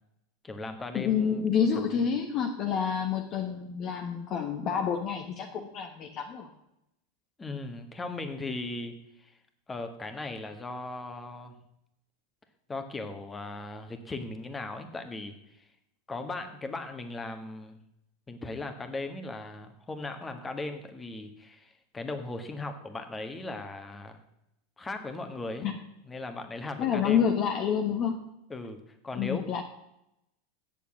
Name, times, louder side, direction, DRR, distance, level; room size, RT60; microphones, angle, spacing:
voice 1, 0.4-1.4 1.7-2.1 7.4-8.9 9.2-9.3 9.7-11.6 12.7-15.4 16.1-17.8 18.3-24.2 24.8-25.7 26.0-27.2 28.5-29.5, left 2 dB, 15° left, 7 dB, 1.6 m, -38 dB
voice 2, 0.9-6.5 25.6-25.8 26.8-28.2 29.1-29.6, left 7 dB, 45° left, 2 dB, 1.3 m, -28 dB
8.6 x 7.0 x 8.4 m, 0.83 s
hypercardioid pair, 95°, 0 cm